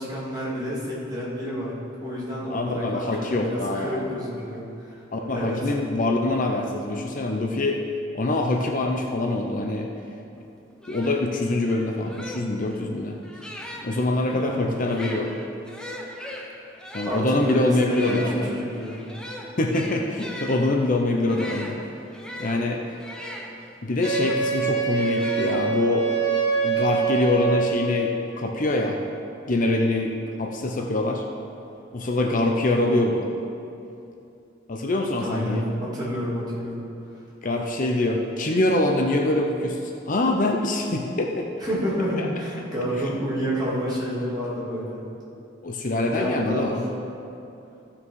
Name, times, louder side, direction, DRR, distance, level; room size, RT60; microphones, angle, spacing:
voice 1, 0.0-1.7 2.0-5.0 5.3-5.7 13.7-13.8 14.3-14.7 17.0-19.0 35.2-36.8 41.6-45.0 46.1-46.8, equal, 20° right, -8 dB, 2.7 m, -29 dB
voice 2, 2.5-4.0 5.1-7.8 8.1-9.9 10.9-13.2 13.8-15.3 16.9-18.5 19.6-21.8 22.4-22.8 23.8-26.1 26.6-29.0 29.5-31.2 31.9-33.3 34.7-35.6 37.4-41.5 42.2-42.3 45.6-46.8, left 2 dB, 45° left, 2 dB, 0.7 m, -24 dB
sound 1, 10.4-10.5 10.8-14.1 14.8-24.4 24.9-26.0, equal, 5° left, 0.9 m, -39 dB
Wind instrument woodwind instrument, 24.0-28.2, right 5 dB, 60° left, 2.0 m, -25 dB
14.5 x 5.9 x 4.7 m, 2.7 s
head